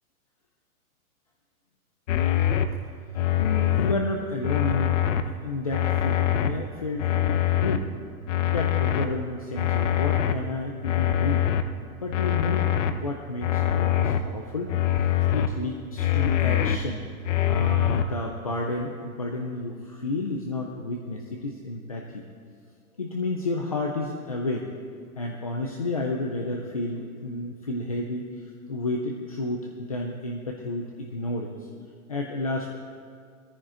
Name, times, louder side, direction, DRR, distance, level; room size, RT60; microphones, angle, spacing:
sound 1, 2.1-2.7 3.1-3.9 4.4-5.2 5.7-6.5 7.0-7.8 8.3-9.0 9.5-10.3 10.8-11.6 12.1-12.9 13.4-14.2 14.7-15.5 16.0-16.8 17.2-18.0, left 11 dB, 55° left, 0.8 m, -23 dB
voice 1, 3.4-5.0 5.3-7.9 8.5-11.5 11.9-14.7 15.3-17.1 17.5-22.2 23.0-24.7 25.2-28.3 28.7-31.7 32.1-32.7, left 2 dB, 30° left, 0 dB, 0.3 m, -31 dB
17.0 x 14.0 x 3.7 m, 2.2 s
hypercardioid pair, 170°, 44 cm